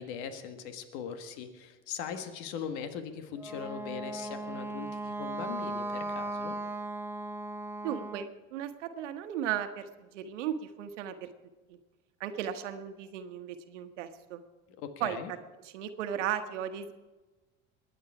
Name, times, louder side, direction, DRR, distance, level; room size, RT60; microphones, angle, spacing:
voice 1, 0.0-6.6 14.8-15.3, left 7 dB, 75° left, 8 dB, 1.7 m, -40 dB
Wind instrument woodwind instrument, 3.4-8.3, right 2 dB, 5° right, 1.0 m, -37 dB
voice 2, 7.8-11.3 11.7-11.8 12.2-14.4 15.0-15.2 15.6-16.9, right 10 dB, 85° right, 9 dB, 1.2 m, -36 dB
22.0 x 9.2 x 4.9 m, 1.2 s
hypercardioid pair, 75°, 35 cm